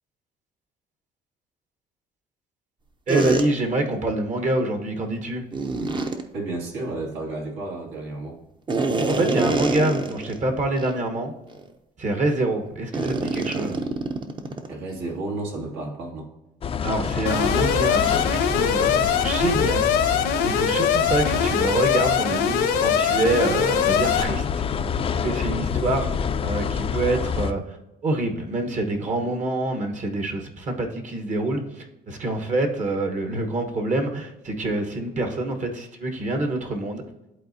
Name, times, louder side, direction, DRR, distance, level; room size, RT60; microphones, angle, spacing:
sound 1, 3.1-3.4 5.5-6.2 8.7-10.4 10.8-10.9 11.5-11.7 12.9-14.7, right 3 dB, 30° right, 0.7 m, -25 dB
voice 1, 3.1-5.4 9.1-11.3 12.0-13.8 16.8-19.9 20.4-24.6 25.1-26.1 26.4-27.8 28.0-37.0, right 2 dB, 45° right, 4 dB, 1.2 m, -26 dB
voice 2, 6.3-8.4 14.7-16.3, right 2 dB, 80° right, -2 dB, 2.3 m, -32 dB
sound 2, 16.6-27.5, left 6 dB, 35° left, 0.4 m, -28 dB
Alarm, 17.3-24.2, left 7 dB, 85° left, 1.1 m, -22 dB
11.0 x 4.1 x 2.7 m, 0.95 s
cardioid pair, 110°, 17 cm